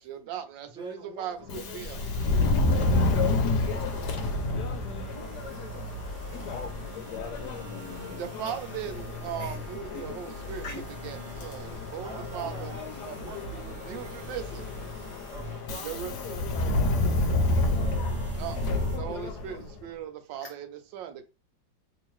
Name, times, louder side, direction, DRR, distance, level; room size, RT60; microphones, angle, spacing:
voice 1, 0.0-1.4 1.7-2.0 8.0-12.7 13.0-13.2 13.8-14.4 15.8-16.1 18.4-18.6 18.9-21.2, right 9 dB, 80° right, 1.3 m, -38 dB
voice 2, 0.7-6.6 12.0-14.7 15.3-17.4 17.7-18.3, right 2 dB, 5° right, 0.5 m, -48 dB
Subway metro underground, 1.4-19.8, left 2 dB, 70° left, 1.2 m, -30 dB
sound 1, 1.9-19.0, equal, 40° right, 0.9 m, -42 dB
voice 3, 6.3-8.2 9.4-9.5 9.9-10.2 10.6-10.8 11.7-11.8 20.4-20.5, left 5 dB, 85° left, 0.7 m, -41 dB
3.1 x 2.8 x 3.1 m
omnidirectional pair, 2.0 m